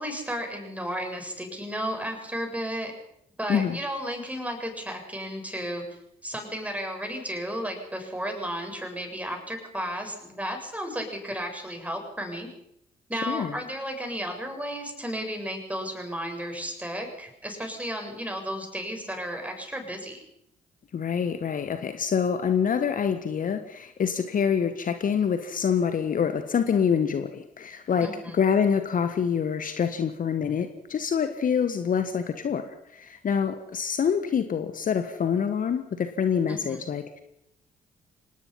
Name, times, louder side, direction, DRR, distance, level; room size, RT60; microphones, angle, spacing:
voice 1, 0.0-2.9 3.4-12.5 13.1-20.2 28.0-28.4 36.5-36.8, equal, 5° right, 3 dB, 7.7 m, -33 dB
voice 2, 13.1-13.6 20.9-28.1 28.3-37.2, left 7 dB, 45° left, 9 dB, 1.5 m, -26 dB
26.0 x 19.5 x 5.8 m, 0.78 s
figure-of-eight pair, 40°, 20 cm